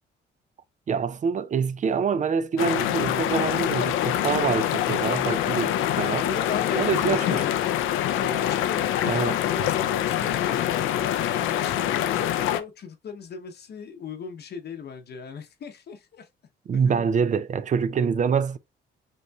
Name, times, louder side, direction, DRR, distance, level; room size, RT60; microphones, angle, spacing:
voice 1, 0.9-6.2 6.8-7.4 9.1-9.4 16.7-18.6, right 6 dB, 40° right, 0.5 m, -25 dB
sound 1, 2.6-12.6, left 11 dB, 90° left, 0.5 m, -25 dB
voice 2, 6.2-7.7 8.2-16.3 16.7-17.1, left 6 dB, 55° left, 0.8 m, -37 dB
5.4 x 3.1 x 2.3 m
cardioid pair, 90°, 20 cm